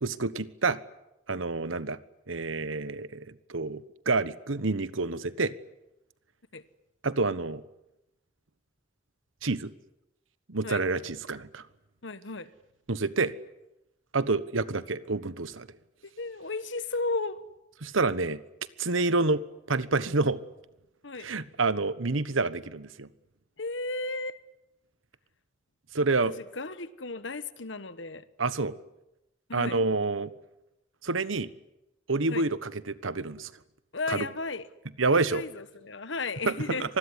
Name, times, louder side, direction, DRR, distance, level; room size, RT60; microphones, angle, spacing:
voice 1, 0.0-0.8 1.3-2.0 2.3-3.8 4.1-5.5 7.0-7.6 9.4-9.7 10.5-11.6 12.9-13.3 14.1-15.7 17.8-18.4 18.8-19.4 19.7-20.4 21.2-23.1 25.9-26.3 28.4-28.8 29.5-30.3 31.0-31.5 32.1-33.5 34.1-34.3 35.0-35.4 36.5-36.6 36.8-37.0, right 3 dB, 85° right, 15 dB, 1.2 m, -28 dB
voice 2, 12.0-12.5 16.0-17.4 21.0-21.3 23.6-24.4 26.2-28.3 29.5-29.8 32.3-32.5 33.9-34.7 35.1-36.9, left 3 dB, 70° left, 14 dB, 1.4 m, -34 dB
25.5 x 20.5 x 9.8 m, 0.91 s
head